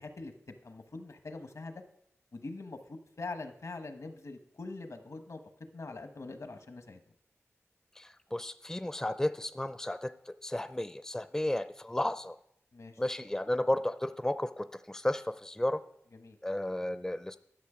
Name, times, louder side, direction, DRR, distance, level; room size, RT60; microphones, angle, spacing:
voice 1, 0.0-1.8 2.3-5.4 5.7-7.0 12.7-13.0 16.1-16.4, left 3 dB, 70° left, 7 dB, 1.1 m, -43 dB
voice 2, 8.0-12.4 13.0-15.8 16.4-17.4, left 1 dB, 10° left, 12 dB, 0.4 m, -33 dB
11.5 x 6.4 x 5.0 m, 0.75 s
cardioid pair, 40°, 5 cm